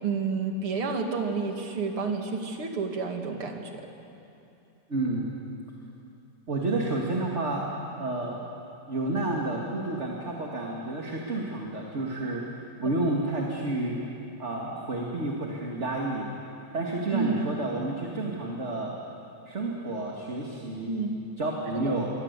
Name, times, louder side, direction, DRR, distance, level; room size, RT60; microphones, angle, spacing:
voice 1, 0.0-3.8 12.8-12.9 17.1-17.5 20.8-21.1 21.7-21.9, right 4 dB, 45° right, 3 dB, 2.9 m, -30 dB
voice 2, 4.9-5.3 6.5-7.7 8.0-8.4 8.9-12.4 12.8-14.0 14.4-16.3 16.7-19.0 19.5-21.0 21.4-22.1, right 2 dB, 25° right, -2 dB, 2.1 m, -30 dB
27.0 x 23.5 x 8.3 m, 2.8 s
omnidirectional pair, 3.6 m